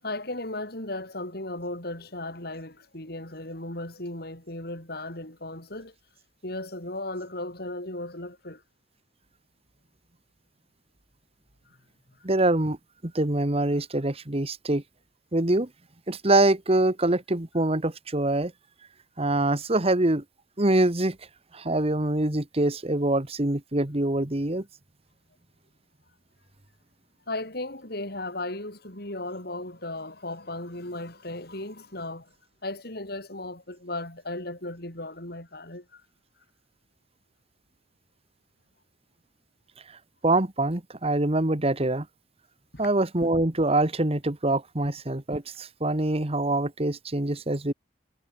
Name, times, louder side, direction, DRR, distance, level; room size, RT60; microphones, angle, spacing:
voice 1, 0.0-5.9 6.4-8.6 11.7-11.8 27.3-32.3 32.6-36.0 42.7-42.9, left 2 dB, 60° left, 7.4 m, -36 dB
voice 2, 12.2-12.8 13.0-14.8 15.3-15.7 16.1-18.5 19.2-20.2 20.6-21.2 21.5-24.6 40.2-42.1 42.8-47.7, right 2 dB, 35° right, 1.6 m, -24 dB
head